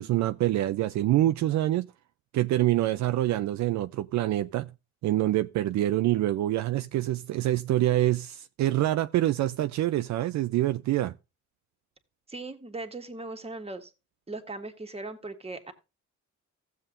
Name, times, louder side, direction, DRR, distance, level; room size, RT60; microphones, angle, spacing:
voice 1, 0.0-1.9 2.3-4.7 5.0-11.1, right 14 dB, 65° right, 0.5 m, -26 dB
voice 2, 12.3-13.9 14.3-15.7, right 2 dB, 20° right, 1.6 m, -38 dB
15.5 x 7.4 x 2.5 m
cardioid pair, 90°, 30 cm